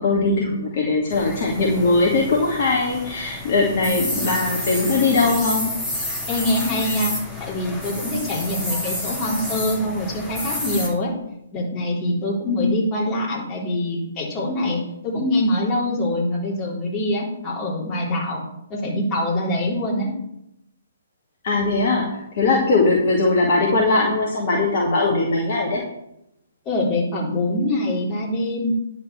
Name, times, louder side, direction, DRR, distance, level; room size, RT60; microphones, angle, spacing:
voice 1, 0.0-5.7 21.4-25.8, left 3 dB, 45° left, -2 dB, 2.2 m, -20 dB
sound 1, 1.1-10.9, left 1 dB, 5° left, 3.2 m, -30 dB
voice 2, 6.3-7.1 7.4-11.1 11.5-18.4 18.7-20.1 26.7-28.7, left 1 dB, 25° left, -4 dB, 3.7 m, -24 dB
10.5 x 5.4 x 6.9 m, 0.82 s
figure-of-eight pair, 125°, 0 cm